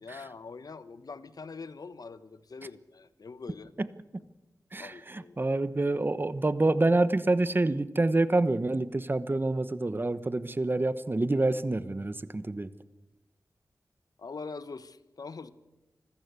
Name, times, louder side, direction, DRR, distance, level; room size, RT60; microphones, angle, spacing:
voice 1, 0.0-3.7 4.8-5.4 14.2-15.5, left 4 dB, 70° left, 14 dB, 1.2 m, -43 dB
voice 2, 4.7-12.7, right 2 dB, 30° right, 14 dB, 1.1 m, -27 dB
25.5 x 14.5 x 8.3 m, 1.0 s
wide cardioid pair, 75°, 7 cm